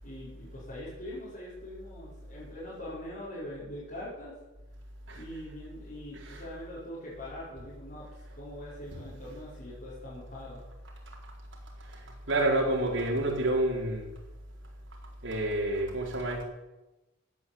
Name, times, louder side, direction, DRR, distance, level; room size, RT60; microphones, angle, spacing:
voice 1, 0.0-4.3 5.2-8.1 8.4-10.6, left 1 dB, 45° left, -10 dB, 5.6 m, -42 dB
voice 2, 12.3-14.1 15.2-16.4, right 1 dB, 70° right, 0 dB, 4.3 m, -28 dB
16.5 x 9.3 x 8.0 m, 1.0 s
head